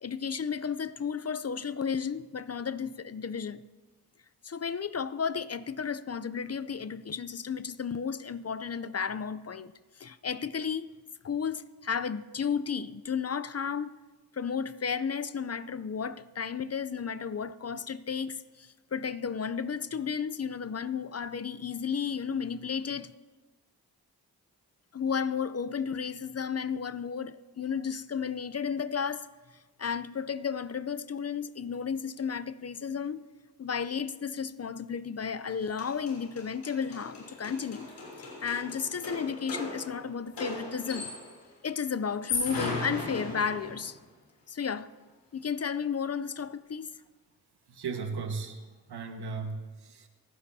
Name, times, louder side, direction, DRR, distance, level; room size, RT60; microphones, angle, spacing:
voice 1, 0.0-3.6 4.4-10.9 11.2-14.0 14.3-23.1 24.9-29.3 29.8-33.3 33.6-37.9 38.2-41.1 41.6-44.0 44.5-44.9 45.3-46.9, left 6 dB, 40° left, 0.6 m, -33 dB
sound 1, 35.5-35.6 35.8-41.4 42.1-43.9, left 3 dB, 90° left, 4.0 m, -37 dB
voice 2, 47.7-48.6 48.9-50.1, right 4 dB, 75° right, 1.6 m, -36 dB
28.5 x 9.8 x 2.8 m
cardioid pair, 45°, 40 cm